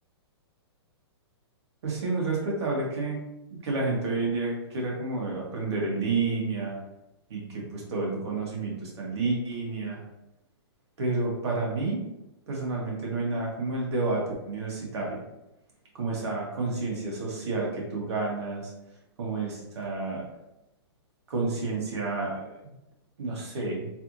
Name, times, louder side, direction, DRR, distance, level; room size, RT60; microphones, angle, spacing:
voice 1, 1.8-3.2 3.5-6.8 7.3-10.0 11.0-12.0 12.5-15.2 15.9-18.7 19.2-20.2 21.3-22.7 23.2-23.9, right 3 dB, 75° right, -3 dB, 1.5 m, -30 dB
3.3 x 2.6 x 3.0 m, 0.90 s
hypercardioid pair, 145°, 14 cm